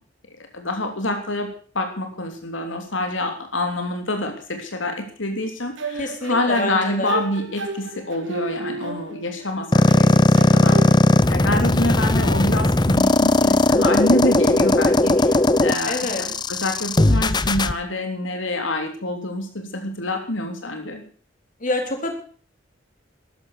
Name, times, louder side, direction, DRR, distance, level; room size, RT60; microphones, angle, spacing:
voice 1, 0.5-10.8 11.3-21.0, left 1 dB, 85° left, 4 dB, 3.3 m, -26 dB
sound 1, 5.8-9.5 9.9-10.9, right 3 dB, 75° right, 2.9 m, -32 dB
voice 2, 6.0-7.1 15.9-16.2 21.6-22.1, left 2 dB, 40° left, 4 dB, 4.0 m, -26 dB
sound 2, 9.7-17.7, left 2 dB, 20° left, 0.7 m, -17 dB
14.0 x 13.0 x 6.6 m, 0.44 s
head